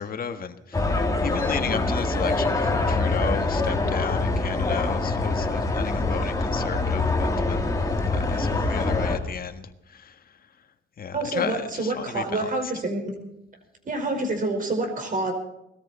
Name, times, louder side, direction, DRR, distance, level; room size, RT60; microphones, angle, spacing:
voice 1, 0.0-7.7 8.1-10.2 11.0-12.5, left 7 dB, 50° left, 8 dB, 1.6 m, -33 dB
sound 1, 0.7-9.2, left 3 dB, 15° left, 2.7 m, -24 dB
voice 2, 11.1-13.1 13.8-15.3, right 2 dB, 45° right, 4 dB, 5.0 m, -28 dB
20.0 x 13.5 x 4.3 m, 0.83 s
cardioid pair, 90°, 20 cm